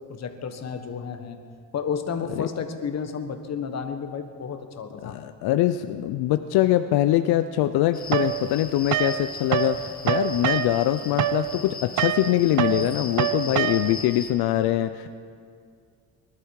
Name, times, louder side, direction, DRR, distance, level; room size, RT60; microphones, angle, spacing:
voice 1, 0.0-1.4 1.7-5.2, left 6 dB, 45° left, 7 dB, 1.4 m, -32 dB
voice 2, 5.0-15.1, left 13 dB, 85° left, 10 dB, 0.6 m, -23 dB
sound 1, 7.9-14.3, left 4 dB, 25° left, 1.6 m, -39 dB
sound 2, 8.1-9.8 10.0-14.1, right 11 dB, 50° right, 0.7 m, -26 dB
21.5 x 12.0 x 4.8 m, 2.2 s
cardioid pair, 110°, 37 cm